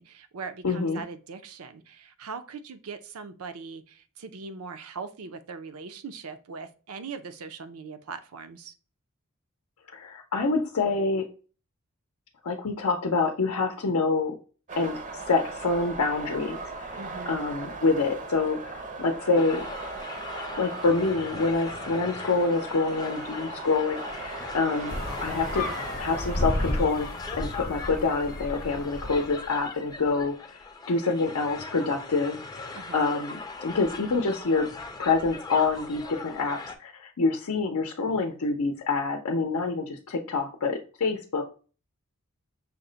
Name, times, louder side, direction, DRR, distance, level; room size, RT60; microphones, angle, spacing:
voice 1, 0.0-8.7 17.0-17.4 32.7-33.0, right 4 dB, 80° right, 10 dB, 0.6 m, -40 dB
voice 2, 0.6-1.0 9.9-11.2 12.4-14.3 14.8-19.6 20.6-25.0 25.2-25.6 26.0-27.1 27.3-30.6 30.9-34.7 35.0-41.4, left 3 dB, 85° left, 3 dB, 0.6 m, -26 dB
sound 1, 14.7-29.5, right 3 dB, 35° right, 0.5 m, -39 dB
sound 2, 19.3-36.8, left 3 dB, 20° left, 0.4 m, -41 dB
sound 3, 24.9-29.4, left 1 dB, 45° left, 0.8 m, -32 dB
5.8 x 2.1 x 3.8 m, 0.36 s
head